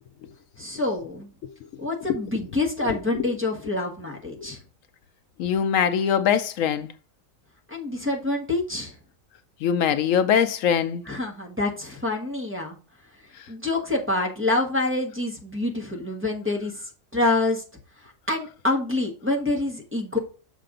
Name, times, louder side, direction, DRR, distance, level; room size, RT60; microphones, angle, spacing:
voice 1, 0.6-1.3 1.8-4.6 7.7-9.0 11.1-12.8 13.5-17.6 18.0-20.2, left 2 dB, 10° right, 1.3 m, -27 dB
voice 2, 2.8-3.3 4.4-4.5 5.4-6.9 9.6-11.0, left 8 dB, 75° left, 1.0 m, -23 dB
6.6 x 5.1 x 3.8 m
omnidirectional pair, 1.4 m